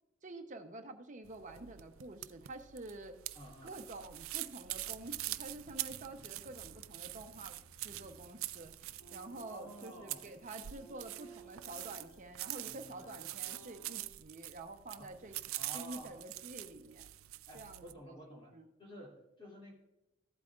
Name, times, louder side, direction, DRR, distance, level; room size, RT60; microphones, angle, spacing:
voice 1, 0.2-3.2 3.6-7.6 7.8-8.7 9.1-15.4 15.7-17.1 17.5-18.7, right 2 dB, 35° right, 6 dB, 0.8 m, -48 dB
sound 1, 1.2-17.9, right 16 dB, 75° right, 0.4 m, -45 dB
voice 2, 3.3-3.8 9.5-10.4 15.0-15.1 15.6-16.2 17.5-18.5 18.8-19.7, equal, 25° left, -4 dB, 2.7 m, -51 dB
sound 2, 4.7-13.2, left 1 dB, 5° left, 1.5 m, -65 dB
sound 3, 9.0-14.0, right 2 dB, 60° left, 3.5 m, -57 dB
14.5 x 8.3 x 2.4 m, 0.93 s
head